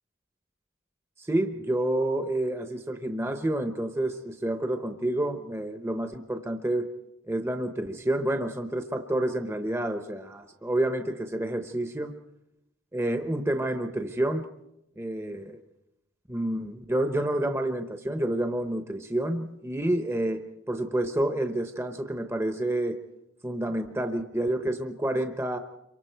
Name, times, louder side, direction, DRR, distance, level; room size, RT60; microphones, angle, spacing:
voice 1, 1.2-6.9 7.3-12.1 12.9-14.4 15.0-15.6 16.3-20.4 20.7-23.0 23.4-25.6, right 1 dB, 15° right, 7 dB, 0.8 m, -29 dB
27.0 x 24.0 x 4.5 m, 0.88 s
head